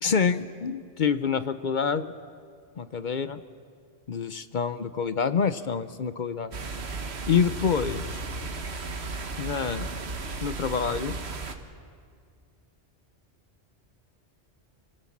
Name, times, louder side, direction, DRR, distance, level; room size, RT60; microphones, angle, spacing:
voice 1, 0.0-2.1 2.8-3.4 4.1-6.5 7.2-8.2 9.4-9.9 10.4-11.2, left 6 dB, 50° left, 13 dB, 0.7 m, -27 dB
sound 1, 6.5-11.6, right 3 dB, 65° right, 1.5 m, -35 dB
28.5 x 17.0 x 7.3 m, 2.1 s
omnidirectional pair, 1.2 m